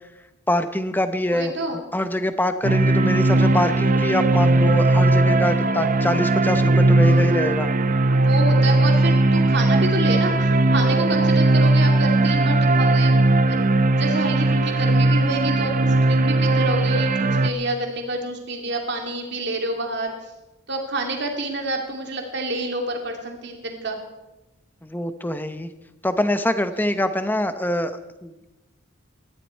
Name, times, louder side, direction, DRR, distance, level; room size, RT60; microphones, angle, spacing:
voice 1, 0.5-1.5 1.9-7.7 24.8-25.7 26.0-28.5, left 1 dB, 10° left, 10 dB, 0.8 m, -24 dB
voice 2, 1.3-1.8 7.0-7.2 8.1-13.1 13.5-20.1 20.7-24.0, right 2 dB, 55° right, 2 dB, 2.6 m, -28 dB
sound 1, 2.6-17.5, right 2 dB, 40° right, 0.7 m, -18 dB
19.0 x 14.0 x 4.5 m, 1.0 s
head